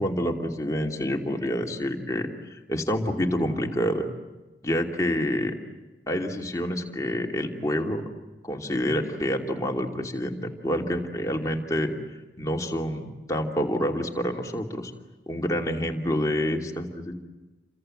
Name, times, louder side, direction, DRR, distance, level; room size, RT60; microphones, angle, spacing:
voice 1, 0.0-4.0 4.6-5.5 6.1-8.0 8.4-11.9 12.4-14.9 15.3-17.1, equal, 20° left, 1 dB, 2.7 m, -27 dB
29.5 x 25.5 x 7.9 m, 1.2 s
head